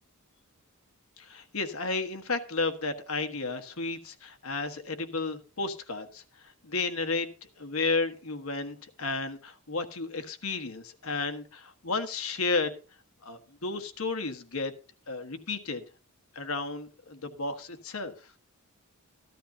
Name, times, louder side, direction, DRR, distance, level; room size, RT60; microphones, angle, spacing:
voice 1, 1.2-12.7 13.2-14.7 15.1-15.8 16.3-18.1, left 3 dB, 70° left, 8 dB, 1.4 m, -33 dB
14.0 x 12.5 x 2.8 m, 0.34 s
head